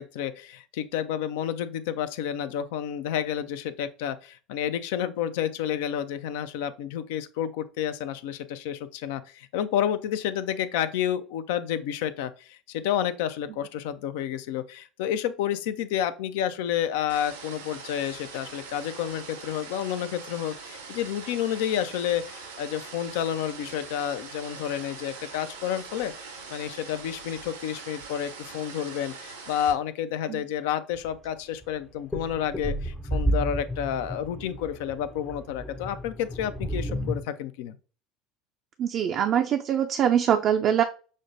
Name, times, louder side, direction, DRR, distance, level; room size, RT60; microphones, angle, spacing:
voice 1, 0.0-37.8, left 10 dB, 75° left, 0.4 m, -30 dB
sound 1, 17.1-29.7, right 4 dB, 90° right, 0.7 m, -42 dB
sound 2, 31.0-31.1 31.6-37.2, right 1 dB, 10° left, 0.5 m, -31 dB
voice 2, 38.8-40.8, right 9 dB, 50° right, 0.4 m, -23 dB
6.2 x 2.1 x 2.5 m
hypercardioid pair, 75°, 0 cm